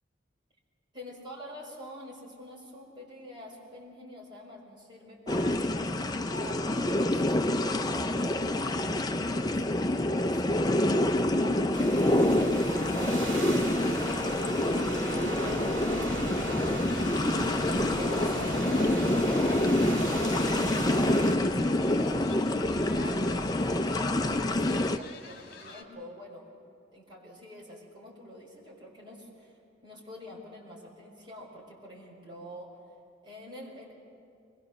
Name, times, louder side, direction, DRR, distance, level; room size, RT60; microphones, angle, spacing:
voice 1, 0.9-5.7 6.3-10.4 11.4-13.6 14.3-15.9 17.9-23.5 23.9-26.5 26.9-32.7 33.2-33.9, left 1 dB, 25° right, -4 dB, 4.9 m, -46 dB
sound 1, 5.3-25.0, left 1 dB, 20° left, 0.5 m, -27 dB
sound 2, 11.7-21.4, right 1 dB, 70° right, 2.9 m, -37 dB
sound 3, 15.8-25.8, left 3 dB, 50° left, 2.1 m, -49 dB
24.5 x 21.5 x 6.7 m, 2.4 s
head